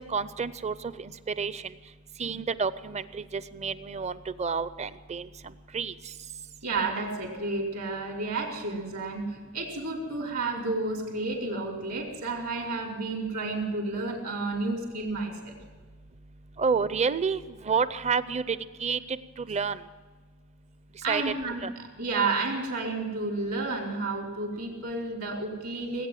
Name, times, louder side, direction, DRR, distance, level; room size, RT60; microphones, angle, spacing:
voice 1, 0.1-1.1 1.4-1.6 2.2-5.3 5.7-5.9 16.6-19.8 21.1-21.2 21.6-21.7, right 5 dB, 30° right, 15 dB, 0.6 m, -29 dB
voice 2, 6.6-15.6 21.0-21.6 22.0-26.1, right 3 dB, 70° right, 0 dB, 4.2 m, -31 dB
19.0 x 9.0 x 7.6 m, 1.5 s
head